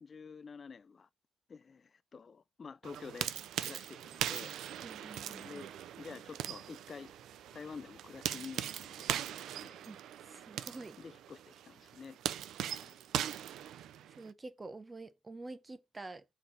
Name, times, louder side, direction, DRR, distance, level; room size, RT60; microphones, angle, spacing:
voice 1, 0.0-1.1 1.5-3.3 3.6-4.6 5.3-5.7 6.0-7.1 7.5-9.8 11.0-12.2 12.7-13.0, left 5 dB, 40° left, 0.3 m, -49 dB
sound 1, 2.8-14.3, right 10 dB, 80° right, 0.4 m, -40 dB
voice 2, 4.8-5.7 9.9-10.0 10.2-11.0 14.1-16.2, right 2 dB, 25° right, 0.8 m, -48 dB
4.7 x 4.0 x 5.3 m
cardioid pair, 90°, 0 cm